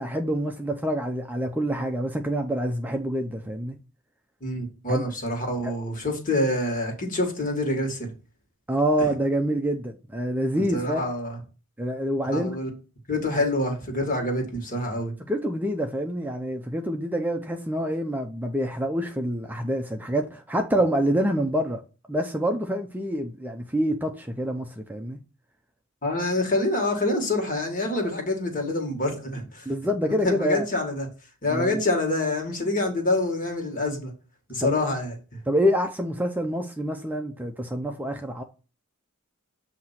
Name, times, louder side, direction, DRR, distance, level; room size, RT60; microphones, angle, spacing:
voice 1, 0.0-3.8 4.9-5.0 5.6-5.7 8.7-11.0 11.8-12.6 13.4-13.5 15.2-21.8 22.1-25.2 29.7-30.7 31.5-31.8 34.6-34.8 35.5-38.4, equal, 10° right, 0.5 m, -26 dB
voice 2, 4.4-8.1 10.7-11.4 12.3-12.7 13.1-15.1 26.0-29.7 30.2-31.1 31.4-34.1 34.5-35.1, left 2 dB, 40° left, 1.8 m, -26 dB
7.8 x 2.9 x 5.7 m
head